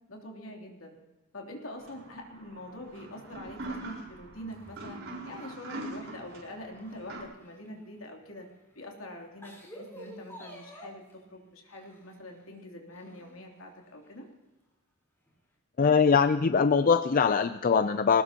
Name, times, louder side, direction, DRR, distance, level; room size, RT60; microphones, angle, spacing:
voice 1, 0.1-0.9 1.3-5.0 5.2-8.5 8.7-14.3, left 1 dB, 70° left, 1 dB, 3.1 m, -44 dB
sound 1, 1.8-7.2, right 2 dB, 65° right, 4.4 m, -43 dB
sound 2, 4.5-6.3 6.7-8.1 8.7-8.8 9.2-11.1 11.7-12.4 12.9-13.7 14.0-14.1 15.3-15.4, equal, 10° left, 4.1 m, -50 dB
voice 2, 15.8-18.2, left 5 dB, 40° left, 10 dB, 0.5 m, -22 dB
20.5 x 19.0 x 2.9 m, 1.1 s
head